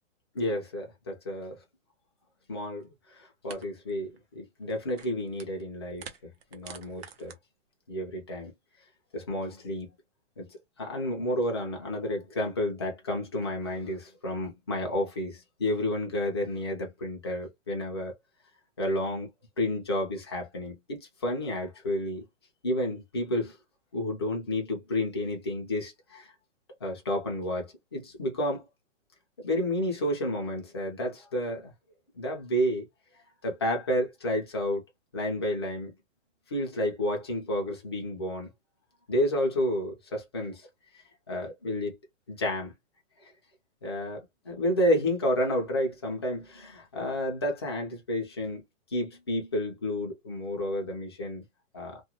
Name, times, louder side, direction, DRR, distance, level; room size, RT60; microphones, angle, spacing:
voice 1, 0.3-1.6 2.5-6.1 6.5-7.3 7.9-8.5 9.1-9.9 10.4-18.1 18.8-19.3 19.6-22.2 22.6-23.6 23.9-26.3 26.8-28.7 29.4-31.7 32.1-32.9 33.4-34.8 35.1-35.9 36.5-38.5 39.1-40.7 41.3-42.0 42.3-42.7 43.8-44.2 44.4-48.6 48.9-51.4 51.7-52.0, left 1 dB, 20° left, 0.4 m, -30 dB
sound 1, 2.8-2.9 3.5-3.6 3.9-4.2 4.6-5.6 5.9-7.3, right 7 dB, 50° right, 0.7 m, -47 dB
2.4 x 2.2 x 2.8 m
hypercardioid pair, 170°, 39 cm